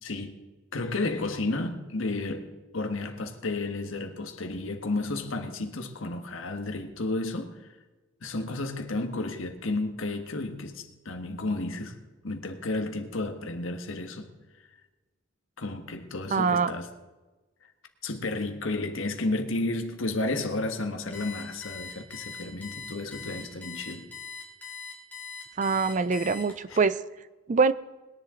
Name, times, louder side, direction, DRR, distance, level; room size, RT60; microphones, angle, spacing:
voice 1, 0.0-0.3 0.7-7.6 8.2-12.0 12.2-14.3 15.6-16.9 18.0-24.1 26.7-26.8, left 2 dB, 80° left, 6 dB, 1.5 m, -32 dB
voice 2, 16.3-16.7 25.6-27.0 27.5-27.7, right 5 dB, 40° right, 15 dB, 0.4 m, -24 dB
Alarm, 21.1-26.8, left 5 dB, 10° left, 2.6 m, -41 dB
20.5 x 10.5 x 3.8 m, 1.2 s
head